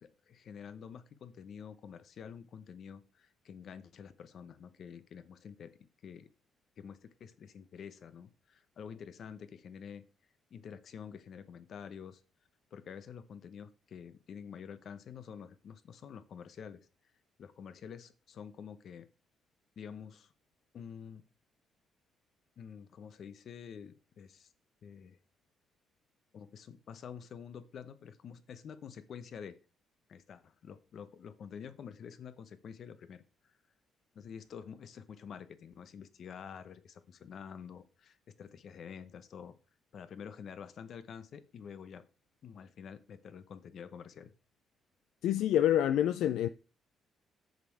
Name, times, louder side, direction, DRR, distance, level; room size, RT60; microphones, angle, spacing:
voice 1, 0.0-5.7 6.0-6.3 6.8-10.0 10.5-12.2 12.7-16.8 17.4-19.1 19.8-20.3 20.7-21.3 22.6-24.5 24.8-25.2 26.3-29.6 30.1-33.5 34.1-39.6 39.9-42.0 42.4-44.3, left 7 dB, 60° left, 0.8 m, -48 dB
voice 2, 45.2-46.5, left 11 dB, 85° left, 0.3 m, -27 dB
6.7 x 6.4 x 4.6 m
cardioid pair, 90°, 0 cm